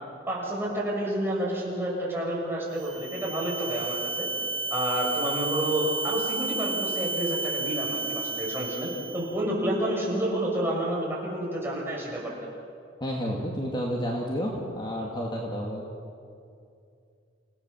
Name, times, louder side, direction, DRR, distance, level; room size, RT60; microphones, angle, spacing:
voice 1, 0.3-4.3 4.7-12.3, right 1 dB, 10° right, -4 dB, 6.6 m, -29 dB
sound 1, 2.7-9.3, right 3 dB, 65° right, 6.0 m, -32 dB
voice 2, 13.0-15.8, equal, 25° left, -1 dB, 2.3 m, -30 dB
29.0 x 17.5 x 7.2 m, 2.5 s
head